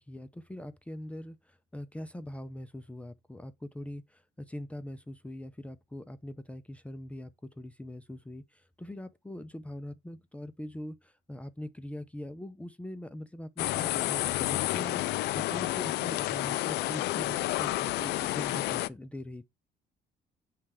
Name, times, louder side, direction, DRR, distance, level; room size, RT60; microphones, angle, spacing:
voice 1, 0.0-19.4, left 1 dB, 10° left, 0.5 m, -42 dB
sound 1, 13.6-18.9, left 17 dB, 80° left, 0.4 m, -30 dB
7.2 x 3.3 x 4.8 m
cardioid pair, 110°, 17 cm